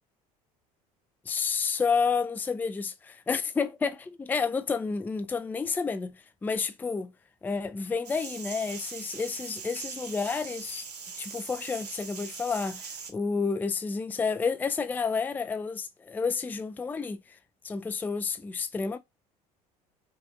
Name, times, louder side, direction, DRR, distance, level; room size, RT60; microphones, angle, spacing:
voice 1, 1.3-7.1 7.4-10.9 11.2-17.2 17.6-19.0, left 5 dB, 10° left, 0.4 m, -30 dB
sound 1, 8.0-13.1, right 5 dB, 80° right, 0.7 m, -41 dB
4.2 x 2.3 x 2.5 m
figure-of-eight pair, 65°, 20 cm